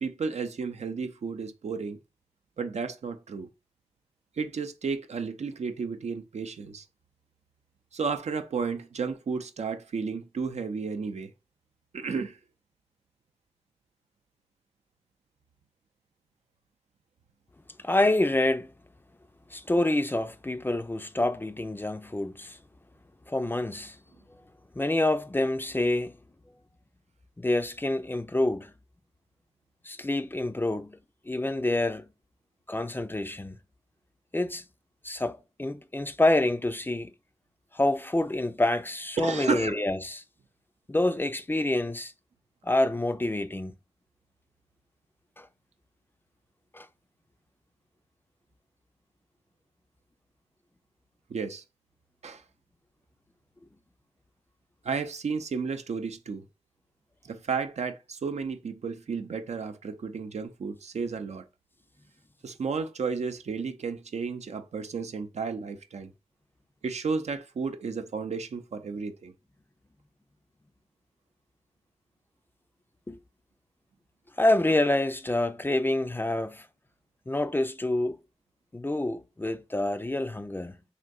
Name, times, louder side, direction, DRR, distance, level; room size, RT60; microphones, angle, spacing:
voice 1, 0.0-2.0 2.6-3.5 4.4-6.9 7.9-11.3 11.9-12.4 39.2-39.8 51.3-51.6 52.2-52.4 54.8-56.5 57.2-61.4 62.4-66.1 66.8-69.3, right 5 dB, 80° right, 0.4 m, -32 dB
voice 2, 17.8-18.7 19.5-22.6 23.3-24.0 24.8-26.1 27.4-28.7 29.8-31.0 31.3-32.1 32.7-33.6 34.3-34.6 35.0-37.1 37.7-40.2 40.9-42.1 42.6-43.7 45.4-45.5 46.7-46.9 73.1-73.2 74.4-76.7 77.3-78.2 78.7-80.8, left 1 dB, 20° left, 0.3 m, -27 dB
3.6 x 2.6 x 2.3 m
wide cardioid pair, 50°, 11 cm